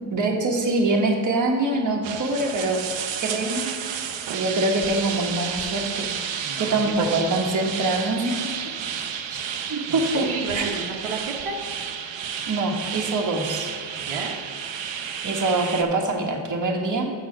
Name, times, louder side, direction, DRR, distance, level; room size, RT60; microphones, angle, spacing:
voice 1, 0.1-2.8 3.2-3.7 4.3-6.1 6.6-8.3 9.3-9.4 9.7-10.2 10.5-10.7 12.5-13.7 15.2-17.1, right 2 dB, 35° right, 0 dB, 1.3 m, -24 dB
sound 1, 2.0-15.8, right 8 dB, 60° right, 0.8 m, -31 dB
voice 2, 6.4-7.4 9.9-11.6 14.0-14.4, right 4 dB, 85° right, 1 dB, 1.1 m, -32 dB
7.0 x 6.3 x 5.4 m, 2.2 s
cardioid pair, 110°, 50 cm